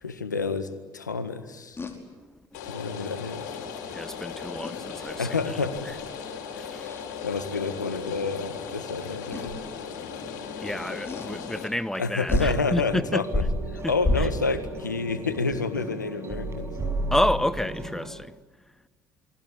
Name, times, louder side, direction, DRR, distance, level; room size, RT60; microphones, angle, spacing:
voice 1, 0.0-0.7 0.9-1.8 2.7-3.4 5.2-5.9 7.2-9.6 12.0-16.7, left 4 dB, 85° left, 1.7 m, -29 dB
sound 1, 1.8-2.0 4.6-5.3 5.8-6.0 6.8-7.1 8.3-8.4 9.3-9.6 11.1-11.3 12.0-12.1 12.3-12.6 13.3-14.6, left 1 dB, 25° left, 5.0 m, -29 dB
Rain, 2.5-11.7, left 6 dB, 70° left, 5.3 m, -37 dB
voice 2, 3.9-5.3 6.6-6.9 10.6-13.2 17.1-18.3, left 1 dB, 5° left, 1.1 m, -29 dB
sound 2, 12.9-18.1, right 2 dB, 30° right, 6.3 m, -34 dB
28.5 x 22.5 x 8.6 m
figure-of-eight pair, 55°, 10 cm